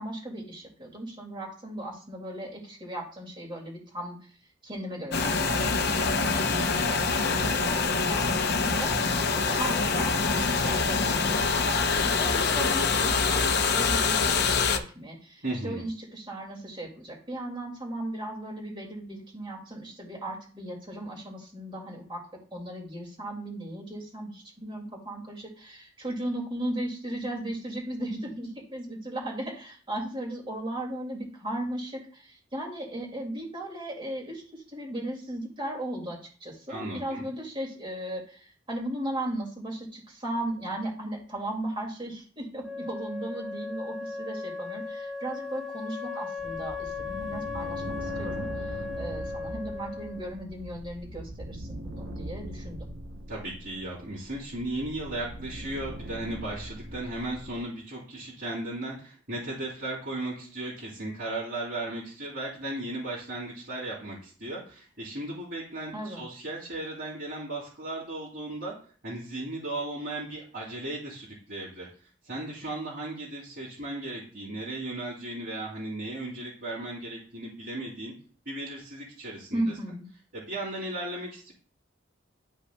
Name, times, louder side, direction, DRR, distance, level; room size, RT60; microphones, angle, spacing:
voice 1, 0.0-4.3 4.6-6.7 7.2-22.2 22.5-52.9 65.9-66.2 79.5-80.1, right 1 dB, 25° right, -1 dB, 2.2 m, -36 dB
sound 1, 5.1-14.8, left 4 dB, 55° left, 0.7 m, -25 dB
voice 2, 15.4-15.8 36.7-37.2 53.3-68.7 69.0-71.9 72.3-78.1 78.4-79.6 80.3-81.5, right 1 dB, 60° right, -7 dB, 2.7 m, -36 dB
Wind instrument woodwind instrument, 42.6-50.3, left 4 dB, ahead, 0.8 m, -37 dB
sound 2, 46.4-57.6, right 1 dB, 85° right, 0.7 m, -41 dB
11.5 x 5.5 x 2.3 m, 0.43 s
head